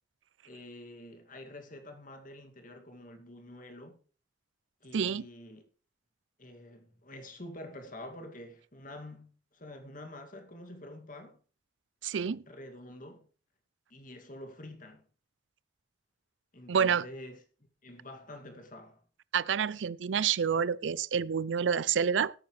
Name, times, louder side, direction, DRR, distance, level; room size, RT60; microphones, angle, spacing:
voice 1, 0.4-4.0 4.8-5.6 6.4-11.4 12.5-13.3 13.9-15.1 16.5-17.4 17.8-19.0, left 1 dB, 45° left, 2.3 m, -47 dB
voice 2, 4.9-5.2 12.0-12.4 16.7-17.1 19.3-22.3, right 7 dB, 80° right, 0.5 m, -28 dB
17.5 x 8.8 x 3.2 m
head